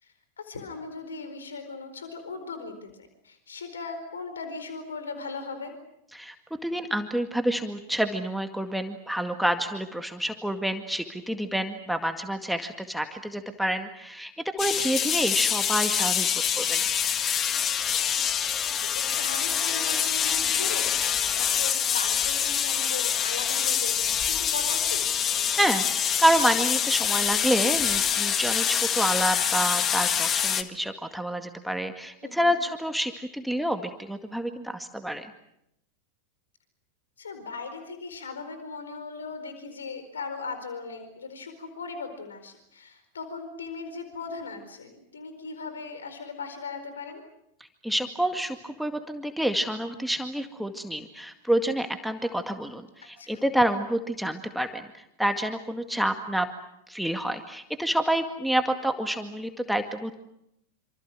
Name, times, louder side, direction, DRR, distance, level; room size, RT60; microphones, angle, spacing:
voice 1, 0.0-5.7 18.9-25.0 32.2-32.6 37.2-47.2 53.2-53.5, left 4 dB, 70° left, 9 dB, 4.5 m, -38 dB
voice 2, 6.6-16.3 16.6-16.8 25.5-35.3 47.8-56.5 56.9-60.1, right 1 dB, ahead, 6 dB, 2.0 m, -28 dB
sound 1, 14.6-30.6, left 8 dB, 25° left, 1.7 m, -25 dB
28.0 x 27.0 x 6.3 m, 0.80 s
figure-of-eight pair, 90°, 0 cm